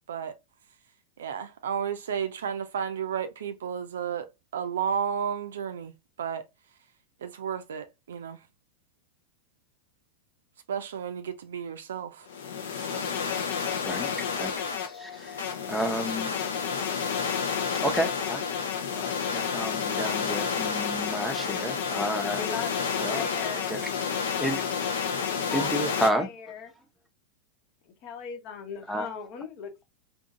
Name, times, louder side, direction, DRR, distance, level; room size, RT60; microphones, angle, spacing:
voice 1, 1.2-5.9 6.2-6.4 7.2-8.4 10.7-12.3 12.8-13.0, right 7 dB, 65° right, 0.5 m, -32 dB
sound 1, 12.3-26.1, left 6 dB, 65° left, 0.7 m, -30 dB
voice 2, 13.8-16.4 17.7-18.4 18.9-22.4 23.0-23.3 23.7-23.9 24.4-24.8 25.5-26.3 28.9-29.1, equal, ahead, 0.8 m, -31 dB
voice 3, 22.3-22.7 23.1-23.7 25.3-25.7 26.1-26.7 27.8-29.8, left 6 dB, 40° left, 1.0 m, -38 dB
3.6 x 2.6 x 2.5 m
figure-of-eight pair, 90°, 0 cm